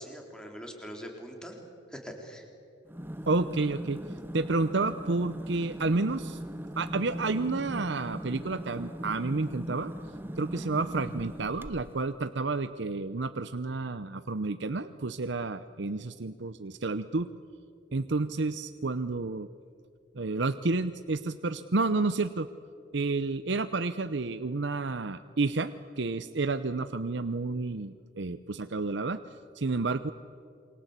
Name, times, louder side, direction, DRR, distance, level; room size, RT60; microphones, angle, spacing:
voice 1, 0.0-1.6 1.9-2.4, equal, 5° left, 2 dB, 3.9 m, -42 dB
sound 1, 2.9-12.1, equal, 10° right, 0.8 m, -39 dB
voice 2, 3.3-4.0 4.3-6.4 6.8-9.9 10.4-17.3 17.9-19.5 20.1-22.5 22.9-29.2 29.5-30.1, right 3 dB, 65° right, 11 dB, 0.8 m, -30 dB
28.5 x 25.0 x 8.2 m, 2.4 s
head